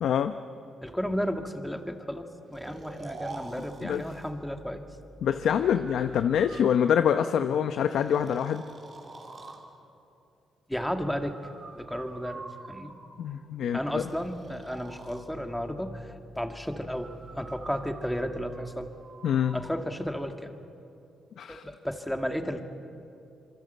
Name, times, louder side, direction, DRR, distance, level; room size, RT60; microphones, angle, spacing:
voice 1, 0.0-0.3 3.8-4.0 5.2-8.6 13.2-14.0 19.2-19.6 21.4-21.6, left 8 dB, 75° left, 9 dB, 0.8 m, -25 dB
voice 2, 0.8-4.8 5.5-5.7 10.7-11.4 11.8-12.9 13.7-18.9 19.5-20.5 21.5-22.6, equal, 5° left, 5 dB, 2.1 m, -33 dB
Breathing, 2.5-4.3 5.6-7.3 7.8-9.6 11.0-13.3 14.1-15.2 16.9-19.7, right 3 dB, 45° right, 3.7 m, -46 dB
26.5 x 23.5 x 8.1 m, 2.6 s
cardioid pair, 95°, 0 cm